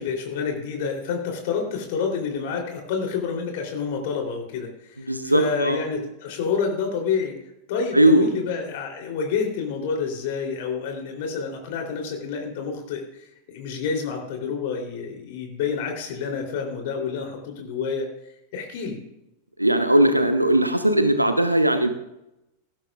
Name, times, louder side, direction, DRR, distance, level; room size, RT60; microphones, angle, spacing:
voice 1, 0.0-7.4 7.7-13.1 13.5-18.1 18.5-19.0, left 5 dB, 50° left, 2 dB, 3.4 m, -28 dB
voice 2, 5.0-5.8 7.9-8.3 19.6-22.1, right 1 dB, 85° right, 8 dB, 1.1 m, -19 dB
18.5 x 14.0 x 2.5 m, 0.87 s
figure-of-eight pair, 90°, 0 cm